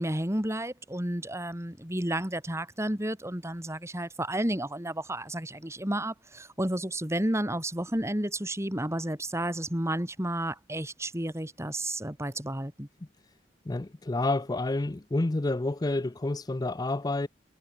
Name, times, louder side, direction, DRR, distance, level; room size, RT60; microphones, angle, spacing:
voice 1, 0.0-12.9, right 1 dB, 15° right, 3.8 m, -31 dB
voice 2, 13.7-17.3, left 2 dB, 20° left, 0.5 m, -29 dB
head